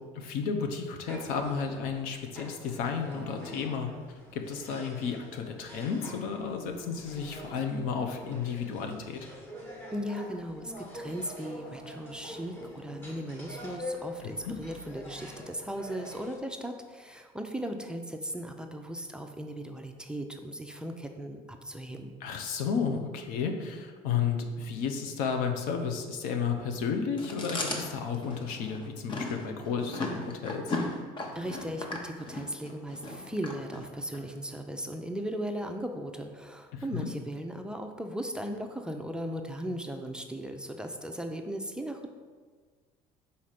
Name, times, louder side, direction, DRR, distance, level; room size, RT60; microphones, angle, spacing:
voice 1, 0.1-3.9 4.3-9.2 14.2-14.5 22.2-30.8 36.7-37.1, left 6 dB, 80° left, 5 dB, 0.8 m, -32 dB
sound 1, 1.1-16.4, left 1 dB, 15° left, 1.3 m, -45 dB
voice 2, 9.9-22.2 31.3-42.1, equal, 5° right, 4 dB, 0.5 m, -37 dB
Chewing mastication, 27.2-34.2, left 2 dB, 35° left, 0.9 m, -37 dB
4.9 x 4.2 x 5.8 m, 1.5 s
cardioid pair, 120°, 14 cm